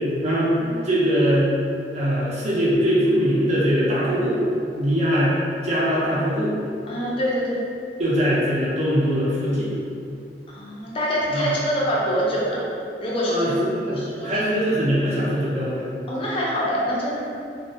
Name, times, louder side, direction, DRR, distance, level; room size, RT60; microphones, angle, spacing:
voice 1, 0.2-0.6 0.8-1.5 1.9-4.4 4.8-5.3 5.6-6.6 8.0-9.7 11.3-11.5 13.3-15.8, equal, 40° right, -8 dB, 0.5 m, -21 dB
voice 2, 6.9-7.6 10.5-12.6 13.0-13.4 14.0-14.5 16.1-17.2, equal, 30° left, -6 dB, 0.4 m, -25 dB
2.3 x 2.0 x 2.6 m, 2.5 s
head